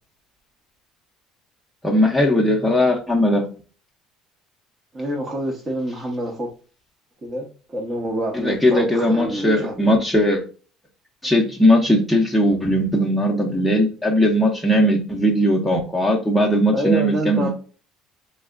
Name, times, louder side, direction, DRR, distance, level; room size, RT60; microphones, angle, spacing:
voice 1, 1.8-3.5 8.3-10.4 11.2-17.5, equal, ahead, 1 dB, 0.6 m, -18 dB
voice 2, 4.9-6.5 7.2-9.8 16.7-17.5, right 1 dB, 30° right, -1 dB, 0.8 m, -27 dB
3.2 x 2.7 x 2.4 m, 0.37 s
supercardioid pair, 105°, 0 cm